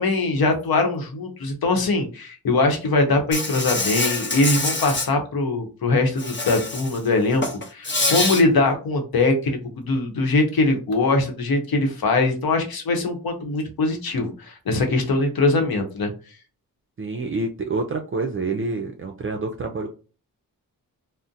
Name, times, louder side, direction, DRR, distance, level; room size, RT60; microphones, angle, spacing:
voice 1, 0.0-7.4 7.7-16.1, left 3 dB, 75° left, 4 dB, 0.9 m, -22 dB
Insect, 3.3-5.1 6.2-7.0 7.3-8.4, left 2 dB, 30° left, 0.8 m, -25 dB
voice 2, 17.0-19.9, right 3 dB, 35° right, 3 dB, 0.4 m, -27 dB
3.7 x 2.1 x 2.7 m, 0.36 s
wide cardioid pair, 90°, 36 cm